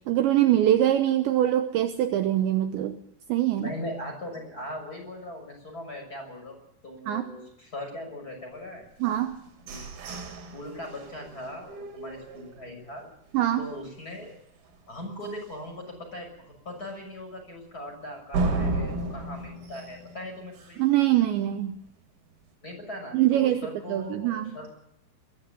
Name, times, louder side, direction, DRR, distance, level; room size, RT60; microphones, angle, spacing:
voice 1, 0.1-3.0 3.3-3.7 7.1-7.2 9.0-9.4 13.3-13.6 20.8-21.8 23.1-23.6 23.9-24.5, right 12 dB, 75° right, 7 dB, 2.9 m, -23 dB
voice 2, 3.5-8.8 9.7-9.9 10.5-13.1 13.6-14.3 14.9-20.8 22.6-24.7, left 1 dB, 15° left, 2 dB, 6.7 m, -39 dB
sound 1, 9.0-12.9 13.4-13.5 13.9-14.3 14.6-14.7 15.2-15.3 18.3-21.0, right 2 dB, 50° right, 4.4 m, -33 dB
22.5 x 15.5 x 8.6 m, 0.77 s
omnidirectional pair, 5.9 m